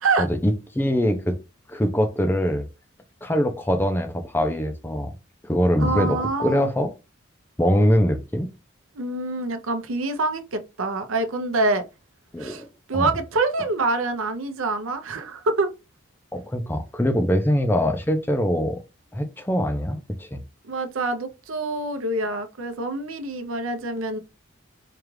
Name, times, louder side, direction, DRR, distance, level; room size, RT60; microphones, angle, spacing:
voice 1, 0.2-1.4 1.7-2.7 3.2-5.1 5.4-6.9 7.6-8.5 12.3-13.1 16.3-18.8 19.1-20.4, equal, 10° left, 0.4 m, -23 dB
voice 2, 5.8-6.7 8.9-11.8 12.4-12.6 12.9-15.7 20.7-24.2, right 3 dB, 85° right, 0.7 m, -26 dB
4.8 x 2.4 x 3.1 m
head